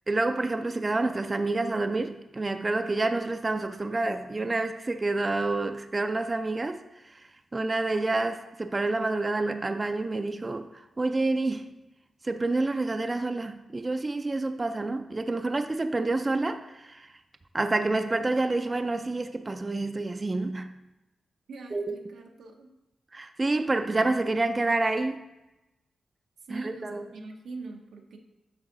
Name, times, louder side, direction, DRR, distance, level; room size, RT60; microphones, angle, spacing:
voice 1, 0.1-6.8 7.1-7.2 7.5-11.7 12.2-17.1 17.5-20.8 21.7-21.8 23.1-25.2 26.5-27.0, right 2 dB, 30° right, 0.4 m, -28 dB
voice 2, 21.5-22.7 26.4-28.2, right 3 dB, 90° right, 0.9 m, -43 dB
8.1 x 5.3 x 3.8 m
cardioid pair, 85°, 0 cm